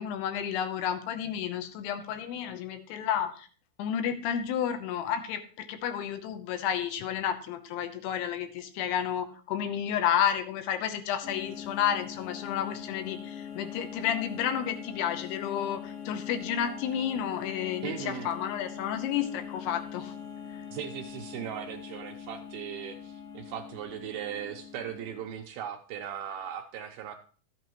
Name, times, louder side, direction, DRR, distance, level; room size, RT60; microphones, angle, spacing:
voice 1, 0.0-3.5 3.8-20.1, left 9 dB, 85° left, 7 dB, 2.9 m, -31 dB
sound 1, 11.2-25.4, left 8 dB, 60° left, 2.3 m, -42 dB
voice 2, 17.8-18.3 20.7-27.2, right 9 dB, 80° right, 4 dB, 2.2 m, -38 dB
13.0 x 8.4 x 3.0 m, 0.41 s
omnidirectional pair, 4.9 m